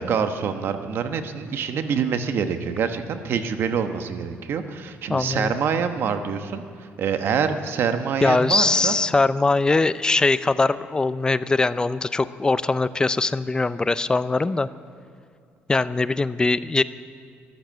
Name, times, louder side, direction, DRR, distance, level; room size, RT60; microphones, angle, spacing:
voice 1, 0.0-6.6 7.0-9.0, right 6 dB, 60° right, 8 dB, 1.1 m, -25 dB
voice 2, 5.1-5.5 8.2-14.7 15.7-16.8, left 3 dB, 20° left, 15 dB, 0.4 m, -21 dB
14.0 x 12.0 x 7.4 m, 2.3 s
cardioid pair, 110°, 4 cm